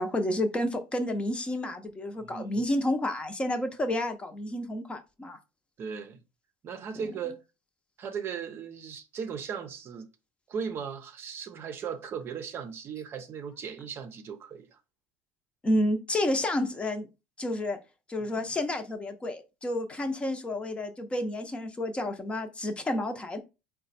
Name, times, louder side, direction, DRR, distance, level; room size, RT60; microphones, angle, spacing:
voice 1, 0.0-5.4 6.9-7.1 15.6-17.1 17.4-17.8 18.1-23.4, left 1 dB, 20° left, 0.8 m, -30 dB
voice 2, 2.2-2.6 5.8-6.2 6.6-7.4 8.0-10.1 10.5-14.8 18.4-18.5, right 6 dB, 40° right, 0.6 m, -37 dB
4.0 x 2.2 x 4.1 m
supercardioid pair, 100°, 6 cm